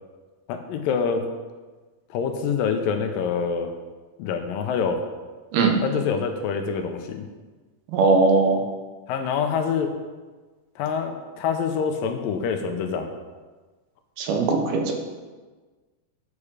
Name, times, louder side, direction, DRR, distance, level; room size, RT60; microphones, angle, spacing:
voice 1, 0.5-1.3 2.1-3.7 4.2-5.0 5.8-7.2 9.1-9.9 10.8-13.1, left 6 dB, 80° left, 6 dB, 2.3 m, -26 dB
voice 2, 7.9-8.6 14.2-15.0, right 3 dB, 90° right, 2 dB, 3.1 m, -20 dB
9.7 x 6.8 x 4.9 m, 1.3 s
omnidirectional pair, 4.2 m